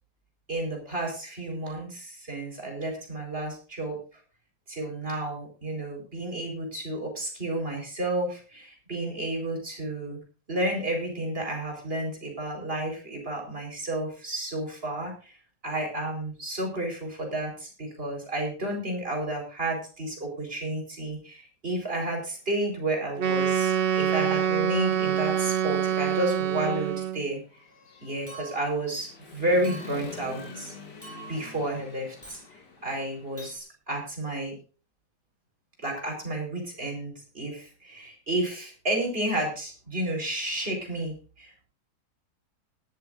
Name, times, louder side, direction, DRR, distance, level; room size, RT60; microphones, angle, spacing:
voice 1, 0.5-4.0 4.7-10.2 10.5-15.3 15.6-27.4 28.0-30.7 31.3-32.4 32.8-34.5 35.8-41.7, right 1 dB, 35° right, 2 dB, 4.8 m, -31 dB
Human voice / Motorcycle, 22.3-22.4 22.9-24.6 25.0-33.6, left 4 dB, 90° left, 2.9 m, -46 dB
Wind instrument woodwind instrument, 23.2-27.3, right 9 dB, 50° right, 0.7 m, -26 dB
Chink clink, 28.3-28.8 29.6-30.1 31.0-31.5 32.2-32.5 33.4-33.6, right 3 dB, 10° right, 6.6 m, -45 dB
19.0 x 12.5 x 2.6 m, 0.36 s
omnidirectional pair, 1.8 m